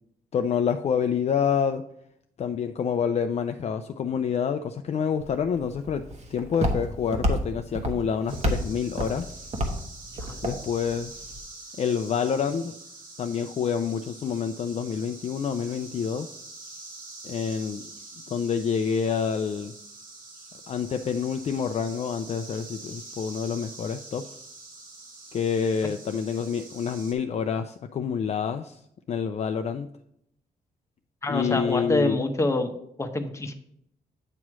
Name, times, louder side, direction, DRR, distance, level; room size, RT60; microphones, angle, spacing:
voice 1, 0.3-1.9 2.4-6.0 6.3-9.4 10.4-11.4 11.8-12.7 13.2-16.4 17.2-17.9 18.3-19.7 20.7-24.2 25.3-28.8 29.1-29.9 31.3-32.2, left 7 dB, 45° left, 7 dB, 0.4 m, -27 dB
Walk footsteps, 5.2-11.4, equal, 45° right, 1.2 m, -31 dB
sound 1, 8.3-27.1, right 3 dB, 60° right, 1.6 m, -45 dB
voice 2, 31.2-32.7 33.0-33.5, left 2 dB, 20° left, 5 dB, 0.9 m, -26 dB
8.5 x 3.1 x 6.0 m, 0.72 s
cardioid pair, 105°, 16 cm